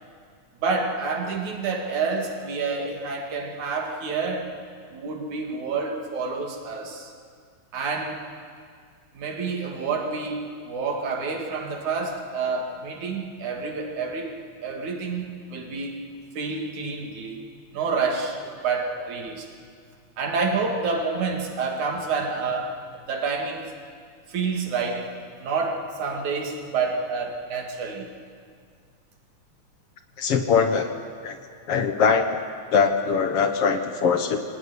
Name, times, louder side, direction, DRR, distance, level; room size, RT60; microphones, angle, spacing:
voice 1, 0.6-4.5 4.9-7.1 7.7-8.2 9.1-14.4 14.6-15.9 16.4-17.4 17.7-19.5 20.2-23.7 24.3-25.1 25.4-28.1, right 4 dB, 80° right, 2 dB, 3.8 m, -28 dB
voice 2, 30.2-30.9 31.2-31.4 31.7-32.4 32.7-34.4, left 6 dB, 60° left, 7 dB, 2.0 m, -22 dB
24.5 x 18.5 x 9.9 m, 2.1 s
omnidirectional pair, 3.4 m